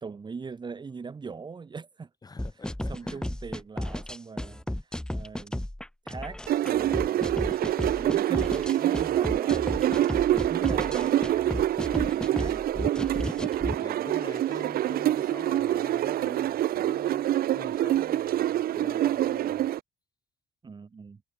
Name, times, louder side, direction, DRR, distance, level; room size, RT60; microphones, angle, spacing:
voice 1, 0.0-2.1 2.9-5.6 6.0-7.6 8.0-12.6 13.8-14.0 20.6-21.2, right 5 dB, 25° right, 2.3 m, -41 dB
voice 2, 2.2-3.3 13.2-19.7, left 4 dB, 25° left, 7.0 m, -46 dB
sound 1, 2.4-13.8, left 1 dB, 5° left, 3.5 m, -34 dB
sound 2, 6.5-19.8, right 13 dB, 65° right, 1.5 m, -26 dB
cardioid pair, 110°, 17 cm